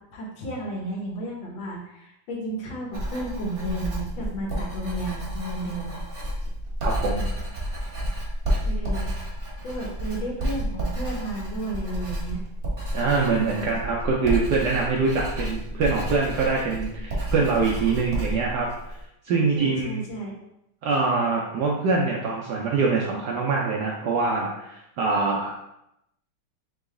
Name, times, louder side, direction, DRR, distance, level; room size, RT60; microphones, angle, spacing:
voice 1, 0.1-6.0 8.6-9.1 9.6-12.4 19.5-20.4, right 1 dB, 70° left, -1 dB, 1.7 m, -33 dB
Writing, 2.9-19.0, equal, 35° right, 0.9 m, -30 dB
voice 2, 6.8-7.2 12.9-18.7 19.2-20.0 20.8-25.7, right 4 dB, 70° right, -2 dB, 1.0 m, -24 dB
3.8 x 3.1 x 3.6 m, 0.83 s
omnidirectional pair, 2.3 m